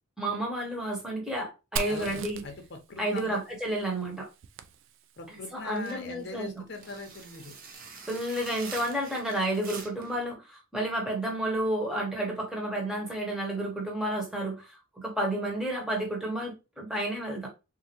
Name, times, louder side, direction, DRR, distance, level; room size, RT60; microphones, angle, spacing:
voice 1, 0.2-2.4 3.0-4.3 5.3-6.5 8.1-17.5, right 1 dB, 5° right, 1.0 m, -31 dB
Fire, 1.8-5.4, right 5 dB, 60° right, 0.3 m, -40 dB
voice 2, 1.9-3.4 5.2-7.6, left 3 dB, 50° left, 0.7 m, -41 dB
sound 1, 5.7-10.2, right 4 dB, 40° right, 0.7 m, -45 dB
3.7 x 2.6 x 2.9 m
head